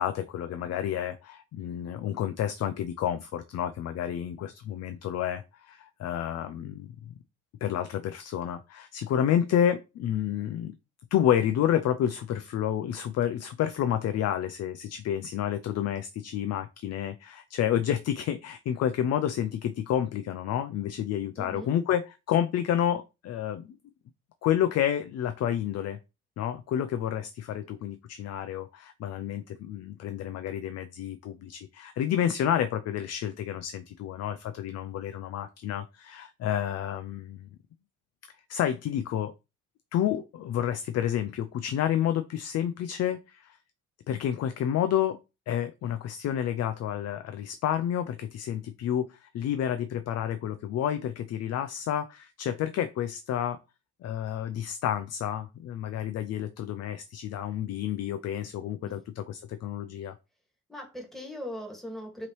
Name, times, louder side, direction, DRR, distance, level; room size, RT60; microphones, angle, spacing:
voice 1, 0.0-7.1 7.6-10.7 11.1-23.8 24.4-26.0 26.4-37.5 38.5-39.3 39.9-43.6 44.1-45.2 45.5-53.6 54.0-60.2, left 10 dB, 55° left, 10 dB, 0.5 m, -30 dB
voice 2, 21.4-21.7 58.8-59.0 60.7-62.3, equal, ahead, 1 dB, 1.8 m, -39 dB
5.7 x 3.0 x 3.1 m, 0.28 s
supercardioid pair, 80°, 32 cm